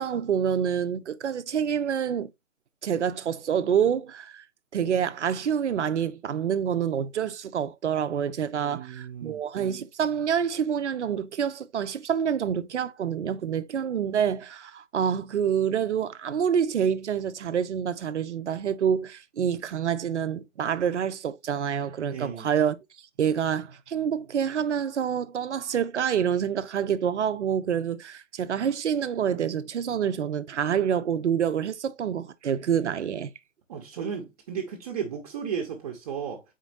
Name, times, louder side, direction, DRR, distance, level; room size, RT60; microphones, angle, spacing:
voice 1, 0.0-2.3 2.8-4.4 4.7-22.8 23.2-33.3, right 8 dB, 60° right, 0.6 m, -27 dB
voice 2, 8.5-9.4 22.1-22.5 33.7-36.4, right 7 dB, 30° right, 0.8 m, -34 dB
4.4 x 4.0 x 2.9 m
figure-of-eight pair, 130°, 40 cm